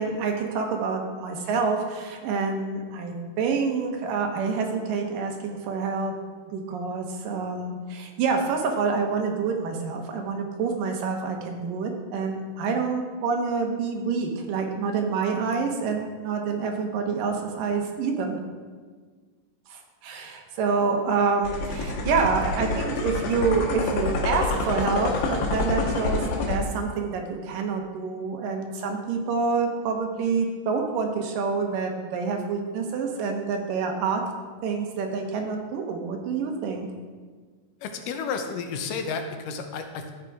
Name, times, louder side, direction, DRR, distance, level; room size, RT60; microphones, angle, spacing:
voice 1, 0.0-6.1 6.5-18.4 19.7-34.2 34.6-36.9, right 5 dB, 90° right, 2 dB, 2.7 m, -27 dB
sound 1, 21.4-26.6, left 3 dB, 70° left, 2.3 m, -27 dB
voice 2, 37.8-40.1, left 5 dB, 85° left, 5 dB, 2.4 m, -32 dB
13.5 x 4.6 x 4.8 m, 1.5 s
omnidirectional pair, 3.8 m